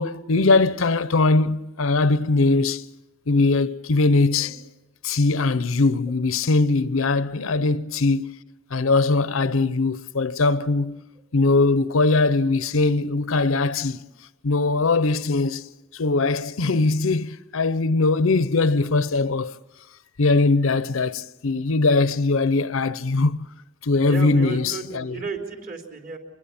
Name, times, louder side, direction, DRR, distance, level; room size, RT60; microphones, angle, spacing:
voice 1, 0.0-2.8 3.3-4.6 5.0-8.3 8.7-11.0 11.3-14.0 14.4-15.6 15.9-19.5 20.2-23.4 23.8-25.2, left 3 dB, 70° left, 0.7 m, -21 dB
voice 2, 4.3-4.6 7.5-7.7 24.1-26.2, right 4 dB, 40° right, 3.9 m, -34 dB
25.0 x 22.0 x 7.2 m
head